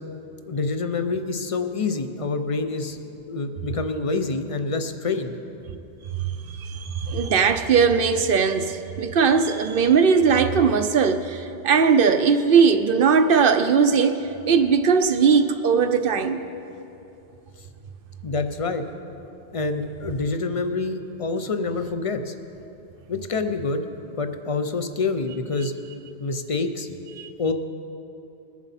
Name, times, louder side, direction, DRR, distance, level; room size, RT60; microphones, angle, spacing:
voice 1, 0.4-3.0 3.3-5.3 18.2-18.8 19.5-22.3 23.1-23.8 24.2-25.7 26.2-26.9 27.4-27.5, left 3 dB, 40° left, 7 dB, 0.6 m, -26 dB
voice 2, 6.5-14.2 14.5-16.4 27.1-27.3, right 6 dB, 60° right, 8 dB, 0.7 m, -19 dB
21.0 x 7.3 x 4.2 m, 2.8 s
omnidirectional pair, 1.1 m